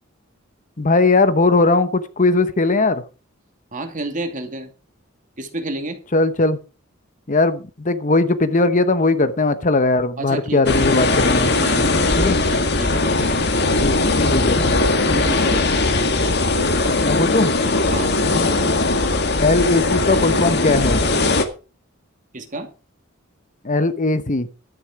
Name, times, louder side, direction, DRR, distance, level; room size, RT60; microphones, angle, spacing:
voice 1, 0.8-3.0 6.1-6.6 7.3-11.5 12.2-12.4 13.8-14.0 14.3-14.7 17.0-17.5 19.4-21.0 23.6-24.5, left 3 dB, 40° left, 1.0 m, -18 dB
voice 2, 3.7-4.7 5.4-6.0 10.2-11.0 11.5-12.2 12.4-13.2 15.1-15.8 17.9-18.1 22.3-22.7, right 2 dB, 40° right, 2.4 m, -30 dB
sound 1, 10.7-21.4, left 2 dB, 55° left, 1.9 m, -19 dB
12.0 x 9.7 x 4.9 m
head